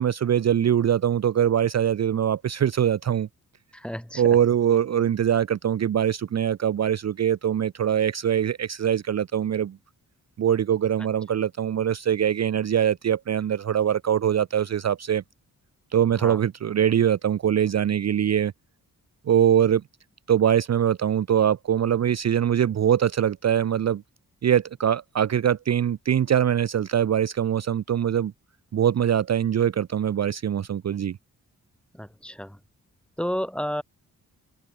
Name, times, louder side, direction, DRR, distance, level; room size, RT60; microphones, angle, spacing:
voice 1, 0.0-3.3 4.2-9.8 10.4-15.2 15.9-18.5 19.3-19.8 20.3-24.0 24.4-28.3 28.7-31.2, right 9 dB, 50° right, 0.6 m, -23 dB
voice 2, 3.7-4.2 16.2-16.4 31.9-32.6 33.2-33.8, equal, 5° left, 1.7 m, -31 dB
open air
cardioid pair, 85°, 35 cm